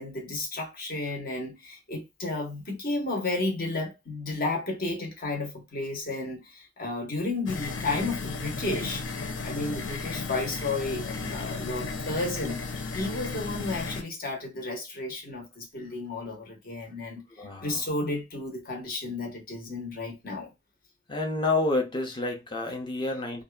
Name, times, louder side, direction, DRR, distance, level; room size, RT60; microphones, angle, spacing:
voice 1, 0.0-9.0 9.4-12.6 12.9-17.2 17.6-20.5, left 2 dB, 50° left, 1.1 m, -32 dB
sound 1, 7.5-14.0, left 4 dB, 75° left, 0.6 m, -34 dB
voice 2, 17.4-17.8 21.1-23.4, left 2 dB, 25° left, 0.7 m, -29 dB
2.7 x 2.4 x 2.3 m
head